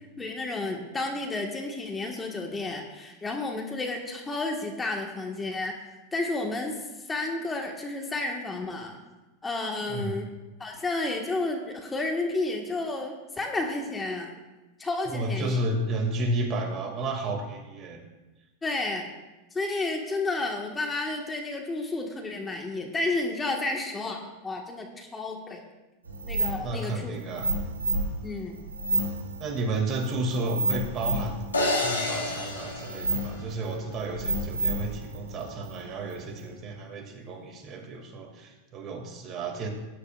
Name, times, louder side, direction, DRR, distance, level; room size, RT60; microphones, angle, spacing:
voice 1, 0.2-5.7 6.1-6.8 7.1-9.0 9.4-10.3 10.6-14.4 14.8-15.6 18.6-19.1 19.5-25.6 26.3-27.2 28.2-28.6, left 2 dB, 15° left, 1 dB, 1.6 m, -31 dB
voice 2, 15.1-18.0 26.6-27.5 29.4-31.4 31.7-39.7, right 2 dB, 35° right, 3 dB, 2.3 m, -32 dB
sound 1, 26.1-36.5, right 1 dB, 85° right, 3.3 m, -32 dB
sound 2, 31.5-33.9, left 2 dB, 90° left, 2.0 m, -29 dB
18.5 x 10.5 x 2.5 m, 1.1 s
hypercardioid pair, 90°, 0 cm